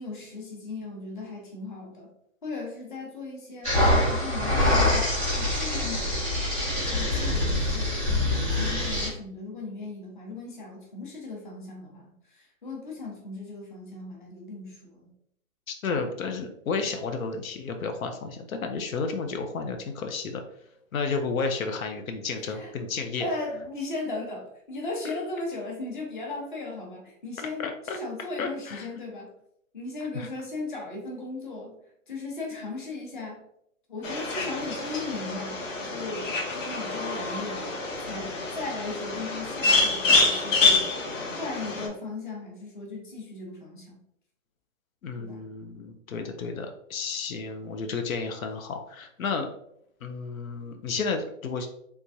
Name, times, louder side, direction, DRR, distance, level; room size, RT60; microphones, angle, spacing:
voice 1, 0.0-2.1 2.4-3.7 4.1-6.2 6.8-8.3 8.5-15.1 22.5-22.7 23.2-29.3 29.7-31.7 32.1-33.4 33.9-35.6 35.9-37.6 38.0-40.9 41.3-44.0 45.1-45.4, left 3 dB, 40° left, -1 dB, 0.9 m, -37 dB
sound 1, 3.6-9.1, left 1 dB, 10° left, 0.9 m, -25 dB
voice 2, 15.7-20.4 20.9-23.3 27.6-28.0 28.4-28.9 30.1-30.3 45.0-49.5 50.0-51.7, left 4 dB, 85° left, 5 dB, 0.7 m, -32 dB
sound 2, 34.0-41.9, left 3 dB, 70° left, 1.1 m, -27 dB
3.4 x 3.0 x 2.6 m, 0.73 s
hypercardioid pair, 180°, 40 cm